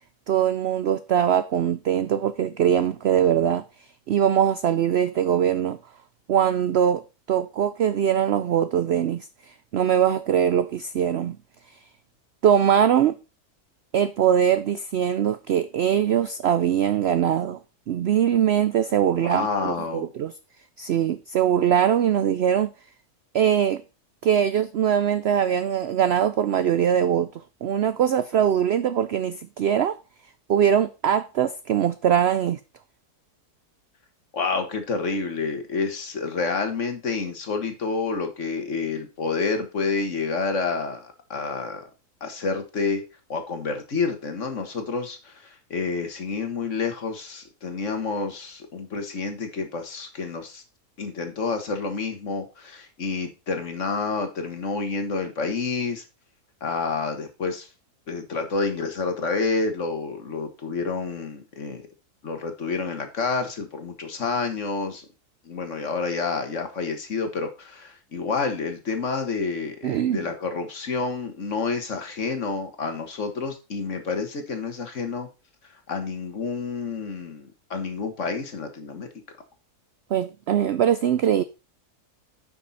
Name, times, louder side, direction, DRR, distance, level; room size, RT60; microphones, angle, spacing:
voice 1, 0.3-3.6 4.1-5.8 6.3-7.0 7.3-9.3 9.7-11.4 12.4-13.1 13.9-17.6 17.9-20.3 20.8-22.7 23.3-23.8 24.2-27.3 27.6-30.0 30.5-32.6 69.8-70.2 80.1-81.4, right 9 dB, 80° right, 0.5 m, -22 dB
voice 2, 19.2-20.1 34.3-41.9 42.2-43.0 43.3-50.6 51.0-56.0 56.6-57.7 58.1-61.9 62.2-65.1 65.5-75.3 75.6-79.2, left 4 dB, 50° left, 1.7 m, -29 dB
9.8 x 5.8 x 4.1 m
omnidirectional pair, 1.7 m